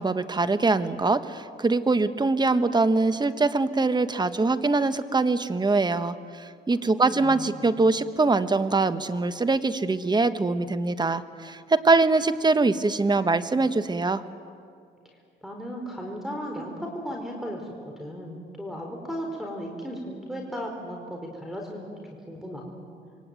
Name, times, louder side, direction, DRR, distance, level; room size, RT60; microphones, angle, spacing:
voice 1, 0.0-14.2, right 3 dB, 20° right, 11 dB, 1.4 m, -23 dB
voice 2, 7.1-7.7 15.4-21.9 22.3-22.8, equal, ahead, 2 dB, 4.5 m, -36 dB
27.5 x 23.0 x 9.2 m, 2.3 s
cardioid pair, 90°, 20 cm